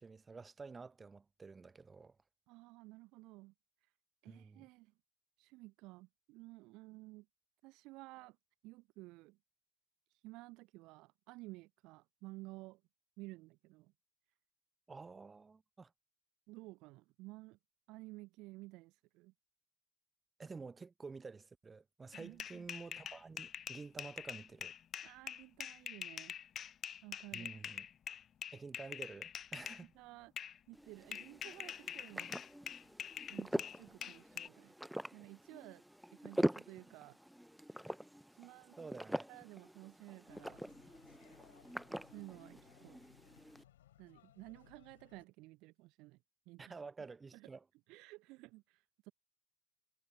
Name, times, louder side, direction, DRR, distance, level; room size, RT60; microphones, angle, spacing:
voice 1, 0.0-2.2 4.3-4.7 14.9-15.9 20.4-24.7 27.3-27.9 28.5-29.9 38.8-39.3 46.6-47.6, right 4 dB, 25° right, 1.2 m, -50 dB
voice 2, 2.5-3.5 4.2-4.9 5.4-7.3 7.6-8.4 8.6-9.4 10.1-12.8 13.2-13.9 16.5-17.6 17.9-19.3 22.1-22.7 25.0-26.4 27.0-27.5 29.9-32.4 33.3-34.7 35.1-35.8 36.1-37.2 38.3-38.8 39.3-40.6 42.1-43.0 44.0-46.2 46.5-46.8 47.3-47.5 47.9-49.1, right 21 dB, 55° right, 0.6 m, -54 dB
sound 1, 22.1-29.8 30.4-30.6 31.1-34.5, left 9 dB, 40° left, 0.6 m, -45 dB
sound 2, 30.7-43.6, equal, ahead, 0.9 m, -43 dB
sound 3, 40.3-45.3, left 13 dB, 70° left, 4.0 m, -65 dB
figure-of-eight pair, 60°, 0 cm